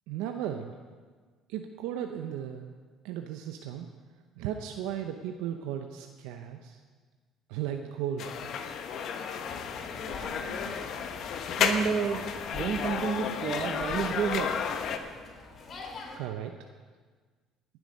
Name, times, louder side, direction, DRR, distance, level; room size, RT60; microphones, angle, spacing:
voice 1, 0.1-0.7 1.5-2.7 3.0-3.9 4.4-6.8 7.5-8.3 16.1-16.6, right 10 dB, 80° right, 5 dB, 0.7 m, -35 dB
sound 1, 8.2-15.0, left 7 dB, 60° left, 1.1 m, -32 dB
sound 2, 9.4-16.2, left 3 dB, 45° left, 2.8 m, -45 dB
voice 2, 11.6-12.2 12.5-14.5, right 6 dB, 55° right, 7 dB, 1.3 m, -30 dB
18.5 x 8.1 x 5.4 m, 1.5 s
supercardioid pair, 85°, 0 cm